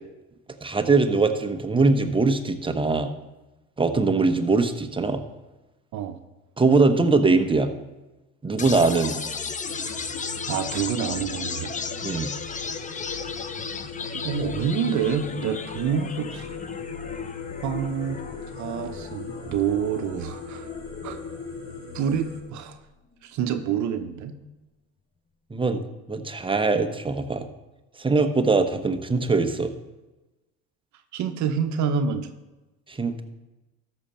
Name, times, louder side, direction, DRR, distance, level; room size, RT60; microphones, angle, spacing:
voice 1, 0.6-3.1 3.8-5.2 6.6-7.7 8.4-9.2 12.0-12.3 25.5-25.8 26.1-27.5 28.0-29.7 32.9-33.2, right 3 dB, 15° right, 7 dB, 0.9 m, -22 dB
sound 1, 8.6-22.6, left 5 dB, 20° left, 0.7 m, -36 dB
sound 2, 9.6-22.4, left 5 dB, 40° left, 3.7 m, -38 dB
voice 2, 10.5-11.7 14.1-16.5 17.6-18.2 18.6-20.7 21.0-21.2 21.9-22.8 23.2-24.3 31.1-32.3, right 7 dB, 55° right, 7 dB, 0.9 m, -27 dB
13.5 x 6.4 x 4.3 m, 1.1 s
supercardioid pair, 90°, 35 cm